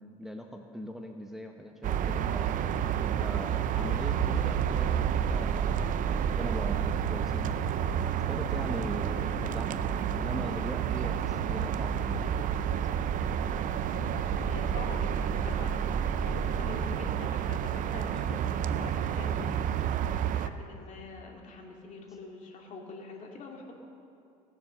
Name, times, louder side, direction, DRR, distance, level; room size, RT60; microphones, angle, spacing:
voice 1, 0.0-2.6 3.0-7.7 8.1-12.2, equal, ahead, 2 dB, 0.9 m, -41 dB
sound 1, 1.8-20.5, right 9 dB, 50° right, 0.6 m, -30 dB
sound 2, 3.7-17.0, right 4 dB, 30° right, 1.8 m, -37 dB
voice 2, 14.5-15.8 16.2-23.7, left 3 dB, 45° left, 1 dB, 2.4 m, -44 dB
18.5 x 7.3 x 6.6 m, 2.5 s
supercardioid pair, 100°, 17 cm